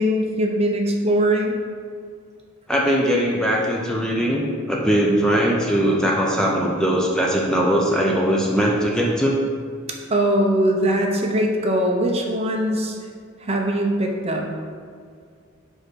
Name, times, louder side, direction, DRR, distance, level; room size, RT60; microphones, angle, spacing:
voice 1, 0.0-1.5 10.1-13.0 13.4-14.4, right 1 dB, 30° right, 1 dB, 0.8 m, -21 dB
voice 2, 2.7-9.4, equal, 5° left, -2 dB, 0.6 m, -20 dB
5.4 x 4.8 x 6.2 m, 2.1 s
head